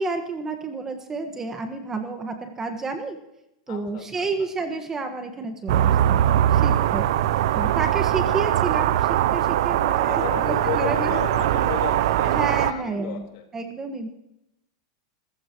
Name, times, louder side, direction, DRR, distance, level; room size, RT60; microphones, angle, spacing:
voice 1, 0.0-3.2 3.7-6.2 6.5-7.0 7.5-11.2 12.2-13.3 13.5-14.1, right 3 dB, 15° right, 5 dB, 1.6 m, -30 dB
voice 2, 3.7-4.5 10.1-13.4, left 8 dB, 55° left, 2 dB, 4.2 m, -34 dB
sound 1, 5.7-12.7, right 12 dB, 70° right, 0.7 m, -21 dB
27.5 x 15.0 x 3.1 m, 0.83 s
supercardioid pair, 150°, 3 cm